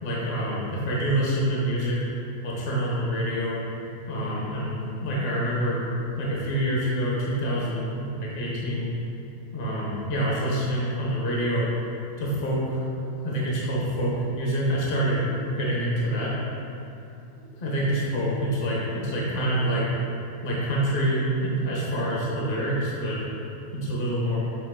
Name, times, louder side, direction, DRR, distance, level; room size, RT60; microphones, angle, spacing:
voice 1, 0.0-2.0 2.4-3.6 4.1-5.9 6.2-8.9 9.5-11.7 12.2-15.2 15.6-16.3 17.6-19.8 20.4-23.2 23.7-24.4, right 1 dB, 35° left, -6 dB, 1.1 m, -26 dB
7.9 x 3.4 x 3.7 m, 2.7 s
omnidirectional pair, 1.8 m